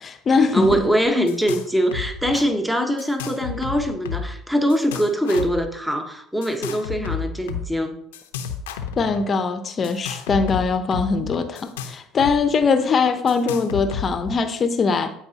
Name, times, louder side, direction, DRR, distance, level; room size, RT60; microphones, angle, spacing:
voice 1, 0.0-0.9 9.0-15.1, left 4 dB, 40° left, 0.8 m, -21 dB
voice 2, 0.5-8.0, equal, 5° right, 1.2 m, -22 dB
sound 1, 0.6-1.7 1.9-2.4 3.0-4.4 4.7-5.6 6.4-7.7 8.1-9.2 9.8-12.4 12.6-12.7 13.3-14.3, left 7 dB, 80° left, 0.8 m, -31 dB
13.0 x 4.9 x 2.9 m
hypercardioid pair, 65°, 0 cm